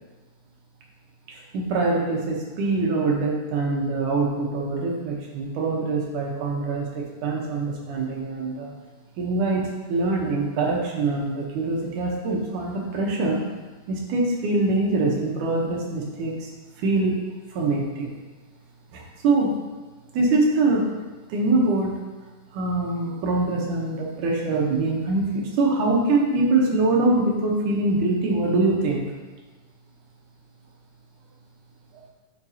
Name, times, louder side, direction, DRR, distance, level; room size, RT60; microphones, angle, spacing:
voice 1, 1.3-8.7 9.2-13.4 13.9-16.5 16.8-17.2 17.5-18.1 18.9-19.6 20.1-20.9 21.3-22.0 22.5-29.1, right 2 dB, 75° right, -2 dB, 2.5 m, -24 dB
10.0 x 5.0 x 2.8 m, 1.3 s
omnidirectional pair, 3.8 m